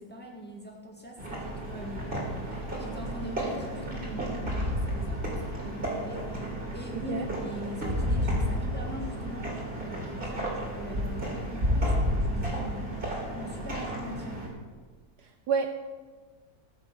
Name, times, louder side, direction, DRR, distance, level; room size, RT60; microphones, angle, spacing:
voice 1, 0.0-14.4, left 1 dB, 5° left, -2 dB, 1.8 m, -42 dB
sound 1, 1.2-14.5, equal, 25° right, 3.1 m, -31 dB
voice 2, 6.9-7.2 15.2-15.8, right 6 dB, 70° right, 7 dB, 1.1 m, -30 dB
14.0 x 7.1 x 6.8 m, 1.4 s
omnidirectional pair, 2.0 m